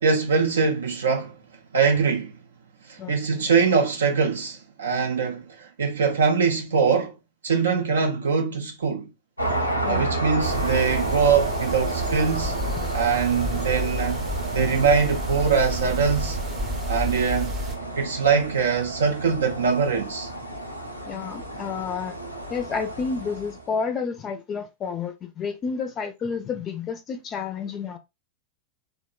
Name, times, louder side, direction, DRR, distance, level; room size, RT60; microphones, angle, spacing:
voice 1, 0.0-1.3 1.7-2.3 2.9-7.1 7.4-9.1 9.9-12.6 12.9-14.2 14.5-16.4 16.9-17.5 18.0-20.3, right 5 dB, 65° right, 0.4 m, -23 dB
voice 2, 3.0-3.5 9.8-10.2 12.8-13.0 21.1-22.1 22.5-28.0, left 5 dB, 30° left, 0.4 m, -30 dB
sound 1, 9.4-23.7, right 2 dB, 90° left, 0.5 m, -31 dB
sound 2, 10.4-17.8, equal, 20° right, 0.6 m, -31 dB
2.9 x 2.1 x 2.3 m
figure-of-eight pair, 90°, 0 cm